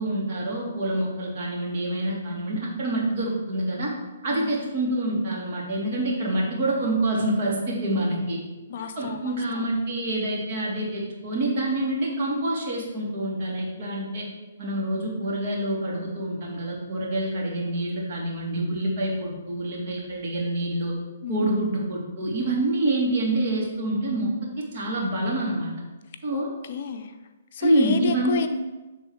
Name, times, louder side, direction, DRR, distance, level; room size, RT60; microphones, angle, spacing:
voice 1, 0.0-3.9 4.2-8.4 9.0-14.3 14.6-20.9 21.3-24.3 24.6-25.7 26.2-26.5 27.6-28.5, right 1 dB, 50° right, -3 dB, 2.3 m, -26 dB
voice 2, 8.7-9.6 21.2-21.4 26.3-27.2 27.5-28.5, left 6 dB, 55° left, 8 dB, 0.5 m, -31 dB
8.1 x 3.6 x 4.7 m, 1.1 s
hypercardioid pair, 140°, 0 cm